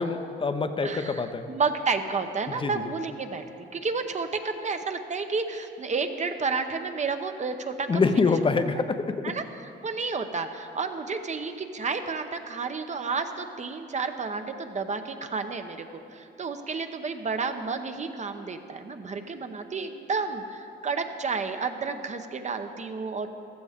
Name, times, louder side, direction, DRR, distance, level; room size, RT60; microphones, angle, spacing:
voice 1, 0.0-1.5 2.5-2.9 7.9-9.3, left 4 dB, 25° left, 9 dB, 0.7 m, -26 dB
voice 2, 0.8-1.2 1.5-3.4 3.7-7.9 9.2-9.4 9.8-23.3, right 4 dB, 35° right, 7 dB, 0.9 m, -31 dB
15.0 x 13.5 x 3.6 m, 2.7 s
cardioid pair, 90°, 20 cm